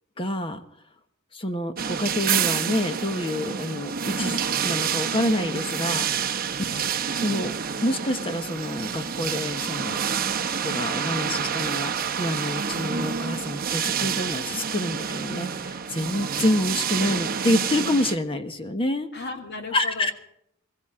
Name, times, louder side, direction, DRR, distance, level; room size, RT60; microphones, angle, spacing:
voice 1, 0.2-0.6 1.3-4.4 4.6-6.3 7.2-7.5 7.8-10.0 10.6-19.1 19.7-20.1, left 1 dB, 25° left, 8 dB, 1.2 m, -27 dB
sound 1, 1.8-18.2, right 7 dB, 45° right, 0.9 m, -28 dB
voice 2, 6.7-7.0 19.1-20.1, left 3 dB, 50° left, 3 dB, 2.6 m, -36 dB
21.0 x 15.0 x 3.7 m, 0.74 s
head